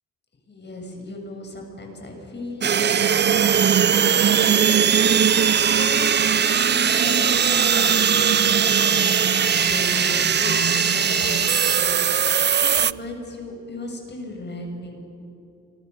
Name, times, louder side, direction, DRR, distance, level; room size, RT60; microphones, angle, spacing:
voice 1, 0.5-9.1 9.6-15.0, left 2 dB, 35° left, 3 dB, 7.3 m, -36 dB
sound 1, 2.6-12.9, right 8 dB, 35° right, 0.6 m, -19 dB
sound 2, 4.6-11.8, equal, ahead, 1.1 m, -31 dB
29.5 x 26.0 x 7.1 m, 2.8 s
cardioid pair, 90°, 30 cm